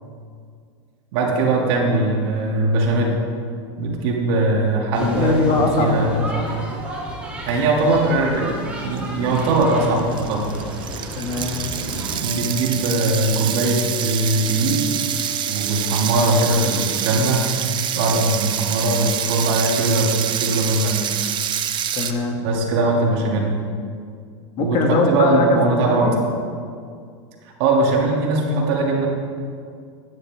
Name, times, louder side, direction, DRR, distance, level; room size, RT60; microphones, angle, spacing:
voice 1, 1.1-3.2 3.8-6.1 7.4-10.5 11.9-14.9 15.5-17.4 17.9-20.1 20.4-21.0 22.4-23.5 24.6-26.1 27.4-29.1, right 2 dB, 65° right, -2 dB, 3.1 m, -20 dB
voice 2, 4.9-6.5 11.2-11.6 21.9-22.4 24.6-25.6 25.9-26.2, left 3 dB, 45° left, 2 dB, 2.2 m, -21 dB
sound 1, 4.9-12.2, right 1 dB, 10° right, 3.7 m, -33 dB
sound 2, 9.0-9.1 9.4-22.1, right 9 dB, 30° right, 0.9 m, -26 dB
sound 3, 11.8-19.3, right 1 dB, 10° left, 3.5 m, -40 dB
16.5 x 11.0 x 3.8 m, 2.2 s
hypercardioid pair, 115°, 14 cm